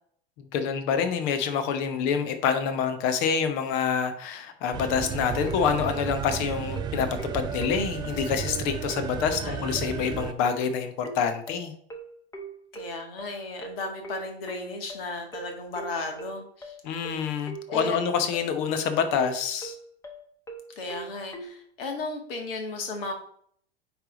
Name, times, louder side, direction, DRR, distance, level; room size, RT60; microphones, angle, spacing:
voice 1, 0.4-7.1 7.3-11.7 16.8-19.8, left 7 dB, 45° left, 8 dB, 1.2 m, -27 dB
sound 1, 4.7-10.3, right 7 dB, 15° right, 0.3 m, -33 dB
sound 2, 5.5-21.6, right 3 dB, 10° left, 1.0 m, -41 dB
voice 2, 9.1-9.8 12.7-16.8 17.7-18.0 20.8-23.1, left 2 dB, 60° left, 3 dB, 1.9 m, -35 dB
9.2 x 3.5 x 3.9 m, 0.62 s
figure-of-eight pair, 90°, 31 cm